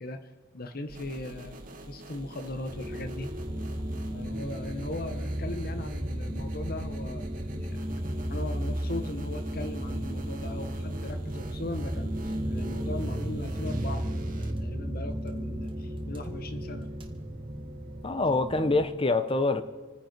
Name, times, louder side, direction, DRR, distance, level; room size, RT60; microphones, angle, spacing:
voice 1, 0.0-1.6 1.8-3.3 4.1-16.9, left 2 dB, 45° left, 1.2 m, -39 dB
sound 1, 0.9-14.5, right 2 dB, 40° right, 1.6 m, -45 dB
sound 2, 2.6-18.8, equal, 25° right, 1.6 m, -34 dB
voice 2, 18.0-19.6, left 3 dB, 25° left, 0.8 m, -25 dB
27.5 x 9.8 x 4.6 m
head